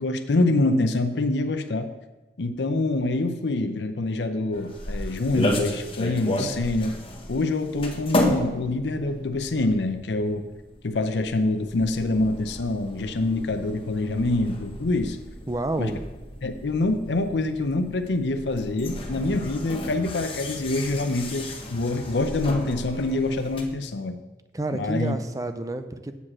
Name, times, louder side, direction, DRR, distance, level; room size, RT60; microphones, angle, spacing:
voice 1, 0.0-1.9 2.4-7.0 7.3-10.5 10.8-15.2 15.8-16.0 16.4-24.2 24.7-25.2, left 2 dB, 80° left, 8 dB, 0.6 m, -25 dB
sound 1, 4.5-23.6, left 1 dB, 30° left, 1.1 m, -33 dB
voice 2, 15.5-16.0 24.5-26.1, right 2 dB, 20° right, 9 dB, 0.5 m, -29 dB
8.1 x 4.9 x 7.4 m, 1.1 s
head